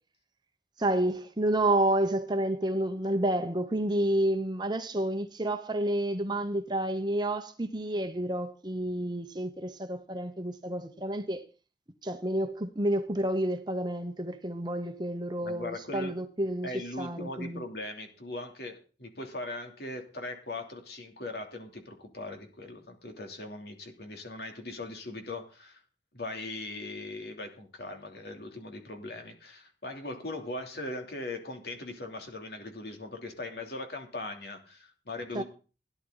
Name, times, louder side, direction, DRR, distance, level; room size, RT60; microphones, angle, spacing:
voice 1, 0.8-11.4 12.0-16.7 17.0-17.6 35.3-35.4, right 1 dB, 25° right, 1.1 m, -30 dB
voice 2, 15.4-16.1 16.6-25.8 26.1-35.4, left 2 dB, 60° left, 3.2 m, -40 dB
17.0 x 11.5 x 4.1 m
head